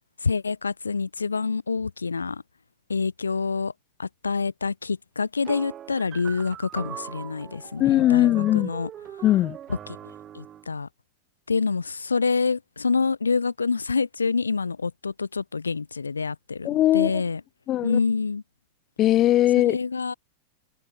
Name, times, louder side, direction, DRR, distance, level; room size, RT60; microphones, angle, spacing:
voice 1, 0.2-2.4 2.9-3.7 4.0-8.9 10.3-10.9 11.5-16.7 16.9-17.4 17.8-18.4 19.7-20.1, left 4 dB, 75° left, 1.6 m, -27 dB
sound 1, 5.4-10.7, right 10 dB, 30° right, 6.9 m, -40 dB
voice 2, 7.8-8.7 9.2-9.6 16.6-17.2 17.7-18.0 19.0-19.8, left 14 dB, 35° left, 1.1 m, -20 dB
figure-of-eight pair, 90°, 0 cm